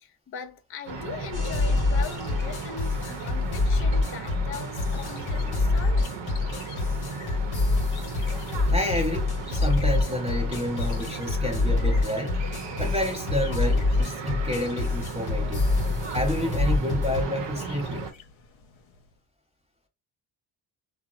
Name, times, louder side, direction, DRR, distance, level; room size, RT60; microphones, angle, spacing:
voice 1, 0.0-6.2, left 6 dB, 30° left, 0.4 m, -40 dB
sound 1, 0.9-18.1, right 4 dB, 55° right, 0.7 m, -35 dB
sound 2, 1.2-19.2, left 6 dB, 70° left, 0.8 m, -50 dB
sound 3, 1.3-17.2, left 3 dB, 50° left, 1.0 m, -26 dB
voice 2, 8.7-12.5 12.8-15.7 16.1-18.0, left 1 dB, 15° right, 0.7 m, -29 dB
2.8 x 2.0 x 2.5 m
cardioid pair, 70°, 50 cm